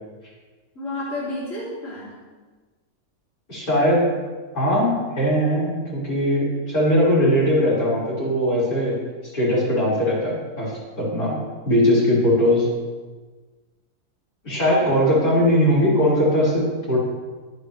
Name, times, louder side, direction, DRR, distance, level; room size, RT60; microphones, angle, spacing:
voice 1, 0.8-2.1 14.8-15.4, left 1 dB, 55° left, -8 dB, 3.7 m, -32 dB
voice 2, 3.5-4.1 4.5-9.0 9.3-11.4 11.7-12.7 14.4-17.0, equal, 85° left, -8 dB, 5.9 m, -20 dB
23.5 x 9.0 x 3.4 m, 1.3 s
omnidirectional pair, 1.6 m